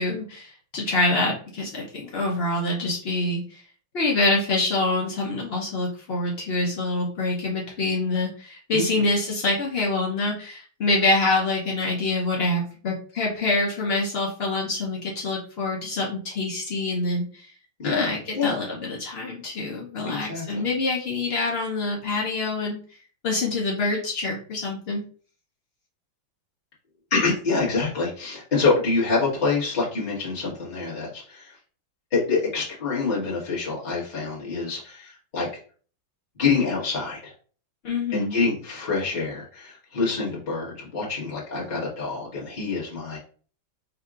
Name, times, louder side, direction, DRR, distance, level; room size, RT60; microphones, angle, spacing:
voice 1, 0.0-3.6 3.9-17.5 17.8-22.8 23.2-25.0 37.8-38.4, left 2 dB, 80° left, -2 dB, 0.5 m, -26 dB
voice 2, 17.8-18.6 20.0-20.6 27.1-31.5 32.1-35.5 36.4-37.3 38.1-43.2, left 4 dB, 25° left, -7 dB, 1.3 m, -26 dB
5.0 x 2.7 x 2.4 m, 0.43 s
omnidirectional pair, 2.1 m